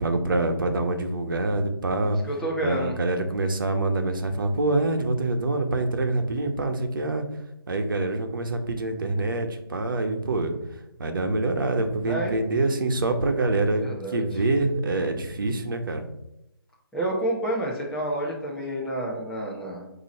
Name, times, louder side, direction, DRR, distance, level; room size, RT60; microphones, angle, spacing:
voice 1, 0.0-2.2 2.6-7.2 7.7-10.5 11.0-13.8 14.1-16.0, right 2 dB, 60° right, 5 dB, 1.2 m, -25 dB
voice 2, 2.1-3.0 12.1-12.3 13.7-14.4 16.9-19.9, right 1 dB, 5° left, -4 dB, 0.9 m, -29 dB
8.8 x 3.0 x 4.2 m, 0.85 s
hypercardioid pair, 165°, 13 cm